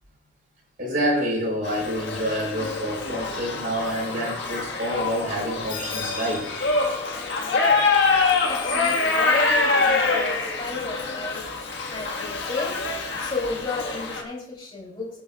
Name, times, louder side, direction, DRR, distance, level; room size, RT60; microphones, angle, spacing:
voice 1, 0.8-6.5 12.8-12.9, equal, 45° right, -2 dB, 4.4 m, -27 dB
Shout / Livestock farm animals working animals, 1.6-14.2, left 3 dB, 65° left, 1.6 m, -25 dB
voice 2, 8.5-11.5 11.9-12.8 13.2-15.2, left 3 dB, 25° left, -2 dB, 3.3 m, -33 dB
20.5 x 7.8 x 2.4 m, 0.68 s
head